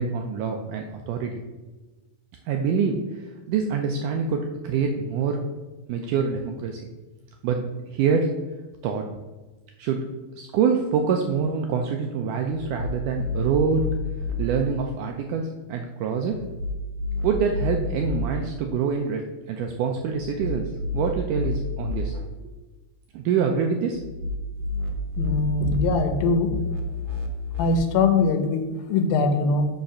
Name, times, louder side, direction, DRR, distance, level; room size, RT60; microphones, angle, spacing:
voice 1, 0.0-1.4 2.5-5.4 5.9-6.8 7.4-8.3 8.8-9.0 9.8-10.0 10.4-13.8 14.4-16.4 17.2-19.2 19.5-22.5 23.1-24.0, right 6 dB, 90° right, 3 dB, 1.8 m, -25 dB
sound 1, 12.5-14.4 16.3-18.2 20.1-22.1 23.9-27.8, left 2 dB, 70° right, 2.4 m, -30 dB
voice 2, 25.2-26.5 27.1-27.2 27.6-29.7, left 3 dB, 75° left, 7 dB, 2.6 m, -22 dB
6.5 x 5.8 x 5.5 m, 1.2 s
omnidirectional pair, 4.3 m